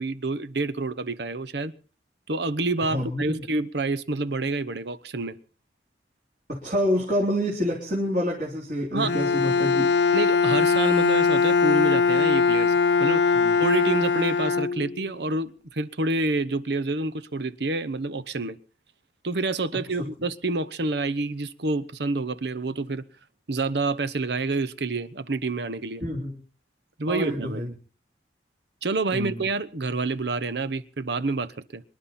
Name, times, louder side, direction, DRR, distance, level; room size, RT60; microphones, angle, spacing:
voice 1, 0.0-1.7 2.3-5.4 8.9-9.1 10.1-12.7 13.0-13.3 13.6-18.6 19.2-23.0 23.5-26.0 27.0-27.7 28.8-31.8, right 3 dB, 75° right, 0.9 m, -28 dB
voice 2, 2.8-3.4 6.5-9.9 13.3-13.5 20.0-20.1 26.0-26.4 27.1-27.7 29.1-29.4, equal, 45° right, 3.5 m, -27 dB
Bowed string instrument, 9.0-15.2, left 5 dB, 85° left, 0.9 m, -21 dB
25.5 x 11.5 x 4.3 m
head